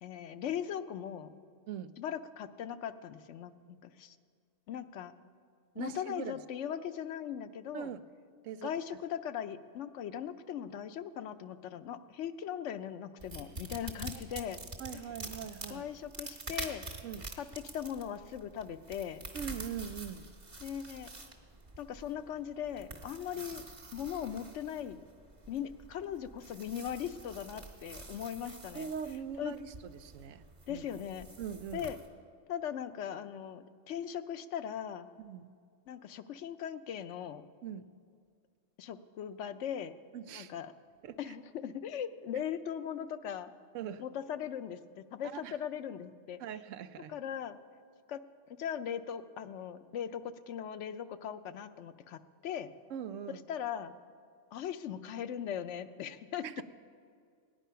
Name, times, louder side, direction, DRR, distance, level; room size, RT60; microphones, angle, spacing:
voice 1, 0.0-1.4 2.0-4.2 4.7-5.1 5.8-7.9 8.6-14.6 15.7-16.8 17.4-17.5 17.7-19.2 20.6-21.1 21.8-23.7 23.9-25.0 25.5-28.9 29.4-29.5 30.7-31.3 31.7-32.0 32.5-35.1 35.9-37.4 38.8-39.9 40.3-40.7 41.2-43.5 44.0-46.4 47.1-47.6 48.1-48.2 48.6-52.7 53.5-53.9 54.5-56.4, left 9 dB, 75° left, 11 dB, 0.9 m, -39 dB
voice 2, 5.7-6.4 7.7-8.0 8.4-8.7 14.3-14.4 14.8-15.9 17.0-17.2 19.3-20.2 28.7-30.9 31.4-31.9 35.2-35.5 37.6-37.9 40.1-40.5 41.0-41.3 43.7-44.0 45.3-45.6 46.4-47.1 52.9-53.4 56.4-56.6, right 8 dB, 90° right, 12 dB, 1.0 m, -41 dB
sound 1, 13.2-32.1, right 2 dB, 40° right, 1.6 m, -47 dB
18.0 x 10.0 x 5.6 m, 2.2 s
omnidirectional pair, 1.3 m